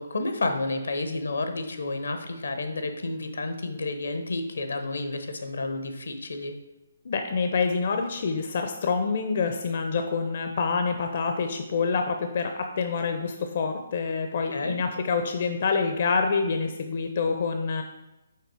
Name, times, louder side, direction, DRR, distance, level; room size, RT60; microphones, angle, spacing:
voice 1, 0.0-6.5 14.5-14.8, left 2 dB, 80° left, 7 dB, 0.7 m, -30 dB
voice 2, 7.0-17.8, left 4 dB, 55° left, 5 dB, 0.5 m, -27 dB
5.7 x 3.7 x 4.6 m, 0.97 s
hypercardioid pair, 145°, 0 cm